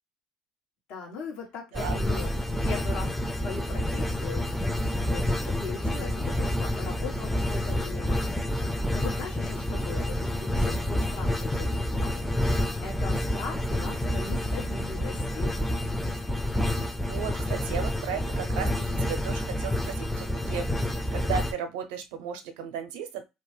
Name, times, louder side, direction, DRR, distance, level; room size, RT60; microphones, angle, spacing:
voice 1, 0.9-4.5 5.1-8.2 8.9-12.4 12.8-15.6, left 4 dB, 70° left, 0 dB, 1.4 m, -40 dB
sound 1, 1.7-21.5, left 1 dB, 5° left, 0.5 m, -28 dB
voice 2, 5.8-6.7 17.0-23.3, right 7 dB, 80° right, 8 dB, 0.7 m, -36 dB
2.8 x 2.1 x 3.2 m, 0.23 s
supercardioid pair, 75°, 2 cm